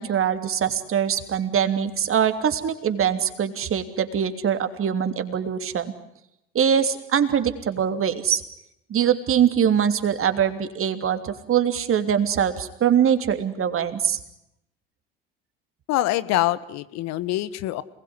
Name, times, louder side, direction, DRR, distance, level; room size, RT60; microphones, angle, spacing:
voice 1, 0.0-5.9 6.5-8.4 8.9-14.2, right 8 dB, 45° right, 9 dB, 3.1 m, -23 dB
voice 2, 15.9-17.8, left 15 dB, 65° left, 16 dB, 1.5 m, -24 dB
27.5 x 20.5 x 9.8 m, 0.83 s
hypercardioid pair, 60°, 29 cm